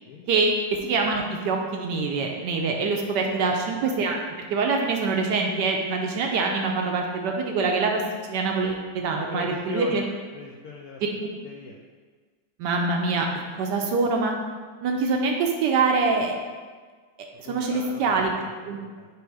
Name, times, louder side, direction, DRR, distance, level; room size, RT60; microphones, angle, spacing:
voice 1, 0.3-4.2 4.5-8.0 8.3-10.0 11.0-11.1 12.6-13.3 13.5-14.3 14.8-16.4 17.5-18.3 18.7-18.8, right 4 dB, 75° right, 2 dB, 1.1 m, -24 dB
voice 2, 9.1-10.1 10.3-11.0 11.4-11.7 17.3-19.1, left 3 dB, 75° left, -1 dB, 0.8 m, -39 dB
6.2 x 3.3 x 4.7 m, 1.5 s
omnidirectional pair, 2.1 m